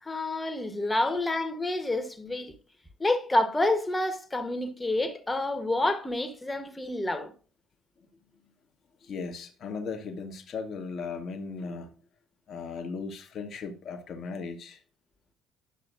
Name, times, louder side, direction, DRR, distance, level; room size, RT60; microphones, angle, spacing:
voice 1, 0.0-2.5 3.0-7.3, left 2 dB, 15° left, 1.3 m, -28 dB
voice 2, 9.0-11.9 12.5-14.8, left 4 dB, 45° left, 1.1 m, -37 dB
10.5 x 6.8 x 2.5 m
figure-of-eight pair, 55°, 0 cm